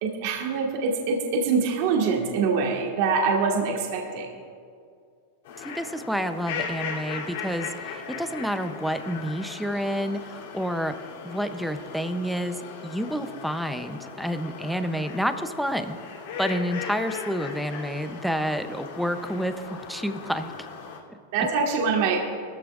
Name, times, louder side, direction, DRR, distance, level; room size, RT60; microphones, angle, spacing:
voice 1, 0.0-4.3 21.3-22.2, right 5 dB, 50° right, 0 dB, 1.5 m, -24 dB
sound 1, 5.4-21.0, left 6 dB, 70° left, 2.8 m, -38 dB
voice 2, 5.6-10.9 11.2-16.0 16.4-20.5 21.1-21.2, equal, ahead, 8 dB, 0.5 m, -29 dB
20.0 x 14.0 x 2.4 m, 2.3 s
supercardioid pair, 170°, 0 cm